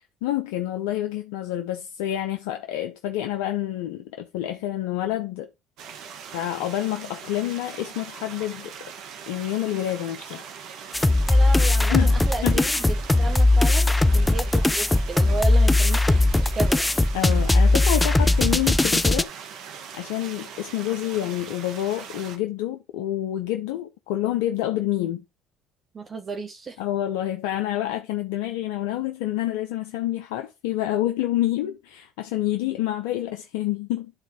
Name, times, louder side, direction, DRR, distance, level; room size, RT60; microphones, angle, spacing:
voice 1, 0.2-5.5 6.3-8.7 9.3-10.4 11.9-12.6 17.1-19.3 19.9-25.2 26.8-34.1, left 13 dB, 75° left, 0.8 m, -28 dB
sound 1, 5.8-22.4, right 7 dB, 65° right, 1.5 m, -41 dB
sound 2, 10.9-19.2, left 2 dB, 10° left, 0.6 m, -19 dB
voice 2, 11.3-16.3 16.5-16.9 25.9-26.8, right 3 dB, 35° right, 1.4 m, -33 dB
10.0 x 3.8 x 4.8 m
hypercardioid pair, 65°, 0 cm